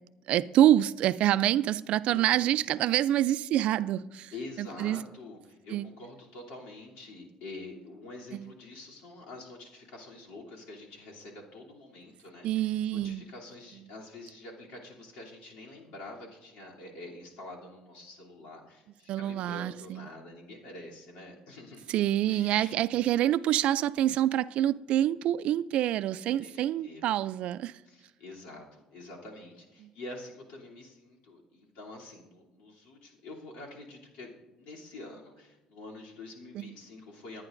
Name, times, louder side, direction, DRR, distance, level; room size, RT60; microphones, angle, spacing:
voice 1, 0.3-4.3 4.6-5.0 5.7-5.9 8.3-8.5 12.4-13.2 19.1-20.1 21.9-27.7 36.6-36.7, right 12 dB, 65° right, 0.3 m, -26 dB
voice 2, 2.1-2.5 4.3-21.9 22.3-22.8 26.2-27.0 27.8-37.4, left 2 dB, 90° left, 3.0 m, -46 dB
22.5 x 9.7 x 2.6 m
cardioid pair, 130°, 2 cm